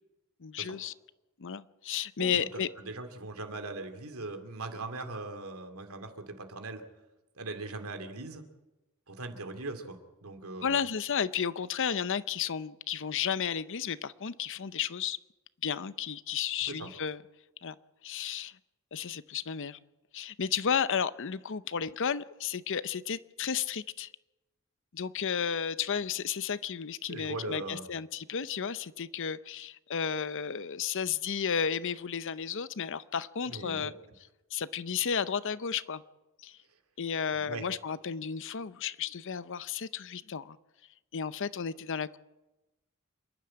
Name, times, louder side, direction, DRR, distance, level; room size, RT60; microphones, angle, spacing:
voice 1, 0.4-0.9 1.4-2.7 10.6-15.2 15.6-17.2 17.6-17.7 18.0-18.5 18.9-19.8 20.1-24.1 24.9-33.9 34.5-36.0 36.4-36.6 37.0-40.6 41.1-42.2, left 7 dB, 60° left, 15 dB, 0.7 m, -33 dB
voice 2, 2.2-6.8 7.4-8.4 9.1-10.8 16.7-16.9 27.1-27.9 33.5-33.9 37.3-37.7, right 2 dB, 80° right, 6 dB, 2.4 m, -40 dB
27.5 x 11.5 x 8.6 m, 1.1 s
head